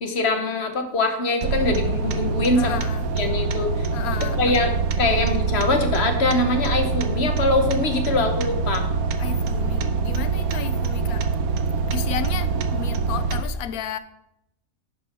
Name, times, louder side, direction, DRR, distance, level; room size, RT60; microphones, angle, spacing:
voice 1, 0.0-2.8 3.2-3.9 4.4-8.9, left 3 dB, 50° left, 1.1 m, -23 dB
sound 1, 1.4-13.4, right 4 dB, 80° right, 1.2 m, -24 dB
voice 2, 2.6-3.1 3.9-4.6 9.2-11.3 11.9-14.0, left 10 dB, 85° left, 1.1 m, -33 dB
10.5 x 5.4 x 4.2 m
omnidirectional pair, 1.5 m